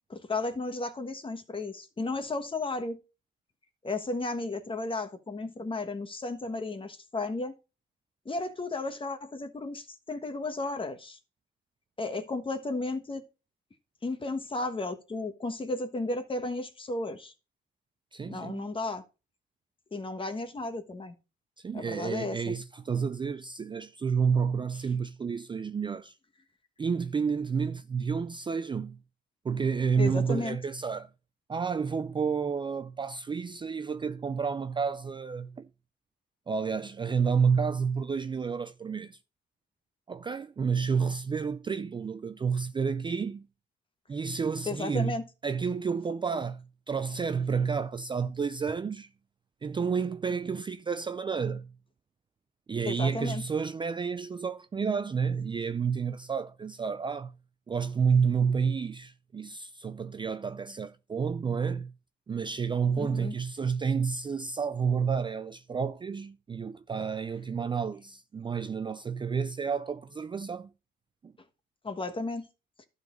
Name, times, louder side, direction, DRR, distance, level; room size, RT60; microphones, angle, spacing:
voice 1, 0.1-3.0 3.8-7.5 8.2-11.2 12.0-13.2 14.0-17.3 18.3-19.0 19.9-21.1 21.7-22.5 30.0-30.6 44.7-45.2 52.8-53.4 63.0-63.4 71.8-72.5, left 2 dB, 25° left, 1.3 m, -34 dB
voice 2, 18.1-18.7 21.6-26.1 26.8-29.0 29.4-31.1 31.5-35.7 36.5-39.2 40.1-43.5 44.1-45.2 45.4-49.1 49.6-51.7 52.7-57.3 57.7-61.9 62.3-70.7 71.2-71.3, right 6 dB, 25° right, 0.4 m, -30 dB
12.0 x 4.0 x 5.0 m
cardioid pair, 90°, 20 cm